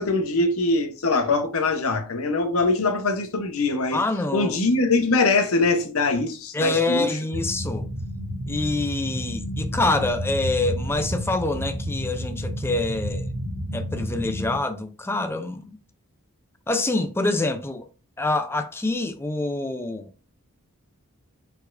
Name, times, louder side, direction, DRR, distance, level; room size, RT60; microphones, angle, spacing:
voice 1, 0.0-4.0 4.3-7.1, left 3 dB, 75° left, 0.8 m, -22 dB
voice 2, 3.9-4.5 6.5-7.9 8.5-13.3 13.7-15.8 16.7-17.9 18.2-20.1, left 2 dB, 10° left, 0.4 m, -26 dB
sound 1, 7.3-14.6, equal, 75° right, 1.1 m, -30 dB
4.5 x 4.1 x 2.5 m
head